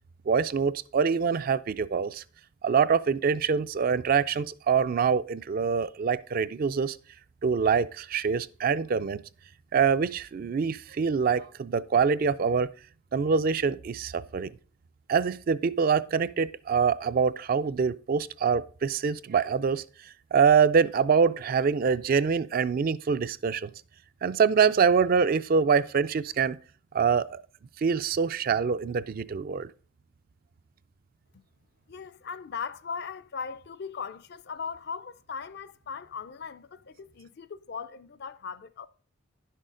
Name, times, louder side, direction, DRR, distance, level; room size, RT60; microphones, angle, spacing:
voice 1, 0.3-2.2 2.6-7.0 7.4-9.2 9.7-12.7 13.1-14.5 15.1-19.8 20.3-23.7 24.2-26.6 26.9-27.4 27.8-29.7, right 6 dB, 45° right, 0.3 m, -25 dB
voice 2, 31.9-38.9, left 6 dB, 55° left, 0.4 m, -38 dB
10.5 x 6.4 x 3.8 m
head